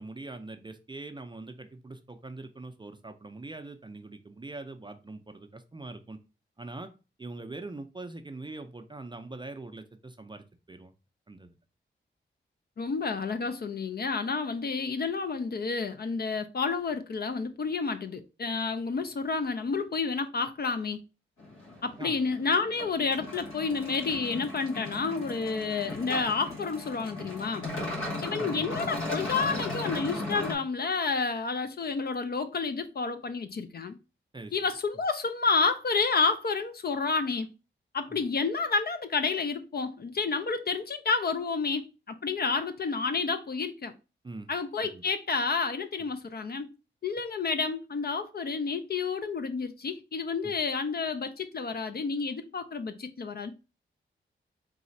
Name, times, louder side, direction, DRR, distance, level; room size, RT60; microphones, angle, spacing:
voice 1, 0.0-6.2 6.6-6.9 7.2-10.9 11.3-11.6 22.0-22.2 28.4-28.8 34.3-34.5 38.1-38.2 44.2-44.5 44.8-45.0 50.4-50.5, right 2 dB, 25° right, 0.5 m, -43 dB
voice 2, 12.8-21.0 21.8-27.7 28.2-34.0 34.5-37.5 37.9-43.9 44.5-46.7 47.0-53.5, left 4 dB, 50° left, 0.5 m, -30 dB
sound 1, 21.4-30.6, left 2 dB, 85° left, 1.3 m, -37 dB
4.0 x 2.4 x 4.0 m
cardioid pair, 65°, 20 cm